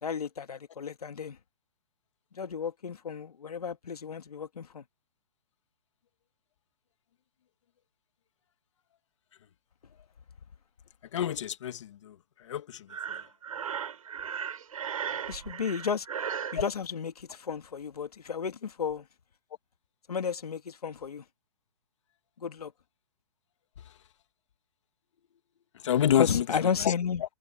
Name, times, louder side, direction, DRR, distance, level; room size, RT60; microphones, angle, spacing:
voice 1, 0.0-1.4 2.3-4.8 15.3-16.1 16.5-19.1 20.1-21.2 22.4-22.7 26.1-27.2, left 6 dB, 85° left, 2.6 m, -33 dB
voice 2, 11.1-12.1 12.5-12.8 25.8-26.4 26.8-26.9, left 10 dB, 55° left, 2.0 m, -27 dB
Breathing, 12.9-16.6, right 8 dB, 70° right, 7.1 m, -36 dB
hypercardioid pair, 160°, 19 cm